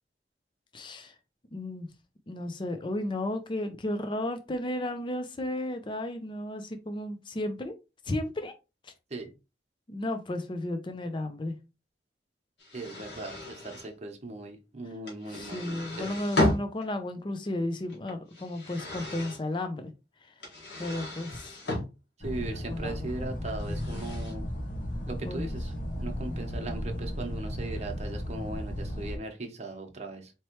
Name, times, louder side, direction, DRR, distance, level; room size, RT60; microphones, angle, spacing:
voice 1, 0.7-1.1 1.5-1.9 2.3-7.7 8.1-8.5 8.8-8.9 9.9-11.5 15.3-19.9 20.2-20.3 20.8-21.6 22.7-23.1 23.7-23.9 25.2-25.5, left 1 dB, 30° left, 7 dB, 0.5 m, -33 dB
sound 1, 12.6-13.9 15.1-16.9 17.9-19.4 20.4-21.8 23.5-24.3, left 1 dB, 80° left, 1.9 m, -33 dB
voice 2, 12.7-16.2 22.2-24.5 25.1-30.3, right 2 dB, 40° right, 3 dB, 0.9 m, -39 dB
sound 2, 22.2-29.2, equal, 50° left, 1.0 m, -35 dB
4.3 x 3.1 x 3.0 m, 0.27 s
head